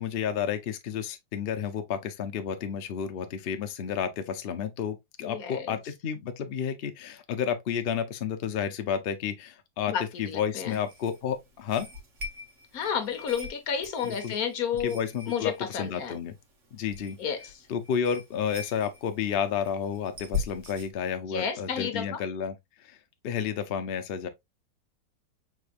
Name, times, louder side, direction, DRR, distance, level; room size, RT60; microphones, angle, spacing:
voice 1, 0.0-11.9 14.0-14.3 14.8-16.3 16.7-17.2 17.7-22.6 22.8-23.0 23.2-24.3, left 7 dB, 85° left, 0.5 m, -31 dB
voice 2, 5.2-5.8 9.9-10.8 12.7-15.0 15.3-16.2 17.2-17.7 21.3-22.2, left 7 dB, 60° left, 1.3 m, -31 dB
sound 1, 10.1-20.9, left 4 dB, 50° right, 1.5 m, -42 dB
4.9 x 3.6 x 2.4 m
omnidirectional pair, 1.9 m